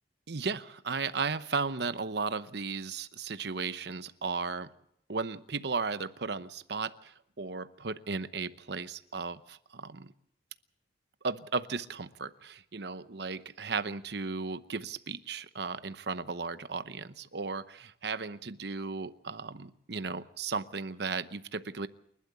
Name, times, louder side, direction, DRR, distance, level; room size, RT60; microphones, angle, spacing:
voice 1, 0.3-4.7 5.1-10.1 11.2-21.9, right 4 dB, 60° right, 13 dB, 0.9 m, -35 dB
29.0 x 12.0 x 8.0 m, 0.72 s
head